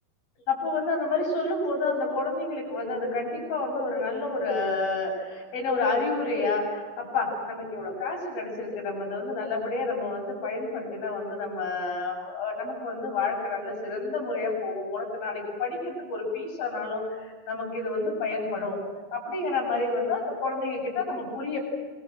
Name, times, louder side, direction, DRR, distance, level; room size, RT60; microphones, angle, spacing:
voice 1, 0.5-18.8 19.1-21.6, left 3 dB, 70° left, 0 dB, 9.1 m, -29 dB
26.5 x 23.0 x 7.9 m, 1.4 s
omnidirectional pair, 4.2 m